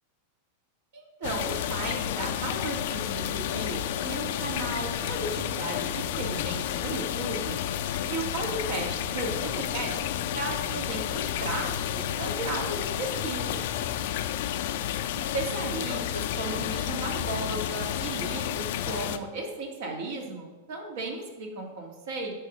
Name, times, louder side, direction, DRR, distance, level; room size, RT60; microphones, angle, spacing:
voice 1, 0.9-7.6 8.1-9.9 10.3-13.6 15.3-22.3, right 2 dB, 70° right, 0 dB, 1.9 m, -35 dB
sound 1, 1.2-19.2, left 10 dB, 65° left, 0.4 m, -31 dB
10.0 x 5.2 x 3.1 m, 1.2 s
hypercardioid pair, 105°, 0 cm